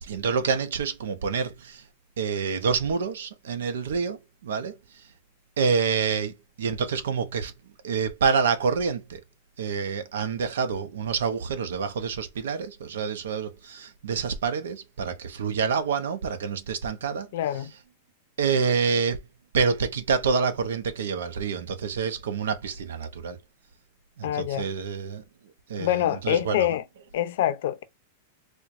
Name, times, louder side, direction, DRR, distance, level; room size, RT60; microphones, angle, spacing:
voice 1, 0.0-1.8 2.2-5.1 5.6-7.5 7.8-9.2 9.6-17.3 18.4-19.2 19.5-23.4 24.2-25.2 25.7-26.7, right 5 dB, 85° right, 0.7 m, -27 dB
voice 2, 17.3-17.7 24.2-24.7 25.8-26.8 27.1-27.8, left 11 dB, 70° left, 0.6 m, -25 dB
4.4 x 2.2 x 2.5 m
hypercardioid pair, 135°, 0 cm